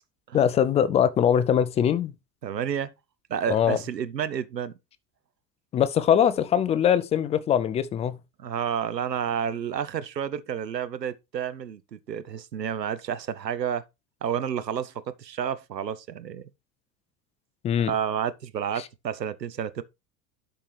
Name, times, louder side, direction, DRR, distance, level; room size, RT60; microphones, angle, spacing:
voice 1, 0.3-2.1 3.5-3.8 5.7-8.2 17.6-17.9, left 9 dB, 15° left, 0.3 m, -22 dB
voice 2, 2.4-2.9 3.3-4.7 8.4-13.8 14.2-16.4 17.9-19.8, right 8 dB, 85° right, 0.7 m, -30 dB
11.5 x 4.5 x 3.2 m
figure-of-eight pair, 75°, 49 cm